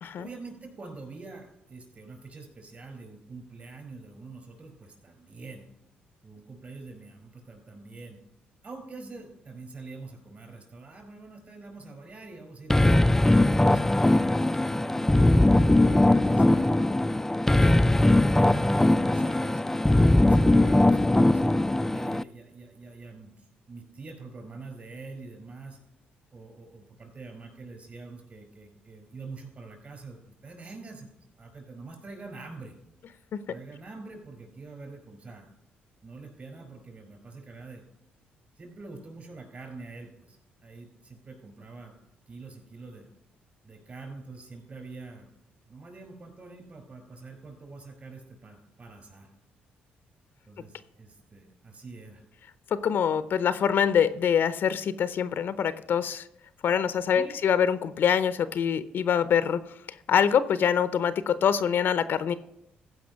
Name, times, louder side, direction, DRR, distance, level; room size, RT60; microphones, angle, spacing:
voice 1, 0.2-5.6 6.2-8.2 8.6-12.9 13.4-16.8 17.5-17.9 18.3-21.5 21.9-25.8 26.3-32.7 33.5-35.5 36.0-37.8 38.6-41.9 42.3-43.1 43.6-45.3 45.7-49.3 50.5-52.2 57.1-57.4, right 3 dB, 40° right, 4 dB, 4.7 m, -45 dB
sound 1, 12.7-22.2, left 1 dB, 10° left, 0.3 m, -20 dB
voice 2, 52.7-56.2 56.6-59.6 60.1-62.3, left 8 dB, 65° left, 14 dB, 0.6 m, -24 dB
15.0 x 5.1 x 6.2 m, 0.82 s
cardioid pair, 75°, 4 cm